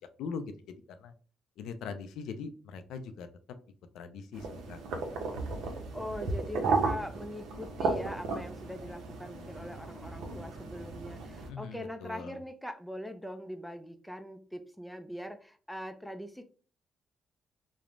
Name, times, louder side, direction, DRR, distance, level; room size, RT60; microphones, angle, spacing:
voice 1, 0.2-1.1 1.6-3.3 3.9-5.3 11.5-12.4, left 5 dB, 85° left, 9 dB, 0.3 m, -42 dB
sound 1, 4.3-11.5, right 3 dB, 85° right, 0.6 m, -34 dB
voice 2, 5.9-16.4, equal, ahead, 8 dB, 0.4 m, -42 dB
3.0 x 2.0 x 2.4 m, 0.41 s
cardioid pair, 90°, 0 cm